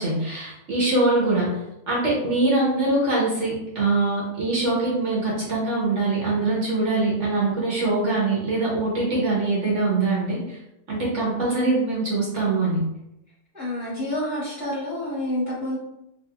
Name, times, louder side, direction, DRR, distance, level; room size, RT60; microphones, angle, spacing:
voice 1, 0.0-1.6 1.9-10.6 10.9-12.8, right 2 dB, 55° right, -5 dB, 1.0 m, -23 dB
voice 2, 13.5-15.8, left 1 dB, 35° left, -8 dB, 1.0 m, -28 dB
3.5 x 2.7 x 2.2 m, 0.86 s
omnidirectional pair, 1.7 m